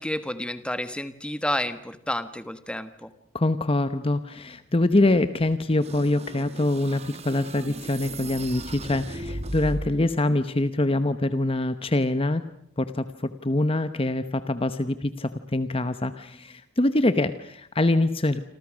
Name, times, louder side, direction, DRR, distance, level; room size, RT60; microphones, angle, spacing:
voice 1, 0.0-3.1, left 1 dB, 5° left, 11 dB, 1.4 m, -30 dB
voice 2, 3.3-12.5 12.8-18.4, left 2 dB, 30° left, 11 dB, 0.9 m, -24 dB
sound 1, 5.8-10.2, right 2 dB, 30° right, 1.2 m, -36 dB
28.5 x 26.5 x 6.3 m, 0.73 s
head